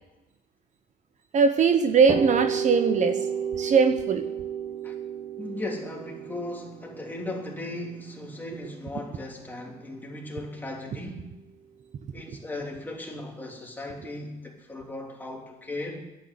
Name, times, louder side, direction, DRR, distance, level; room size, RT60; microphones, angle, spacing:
voice 1, 1.3-3.2 3.5-4.3 12.3-12.4, right 5 dB, 45° right, 1.1 m, -21 dB
sound 1, 2.1-9.8, right 7 dB, 25° right, 3.1 m, -33 dB
voice 2, 5.4-11.3 12.1-16.0, left 2 dB, 10° left, 3.2 m, -37 dB
11.5 x 9.0 x 9.3 m
cardioid pair, 110°, 17 cm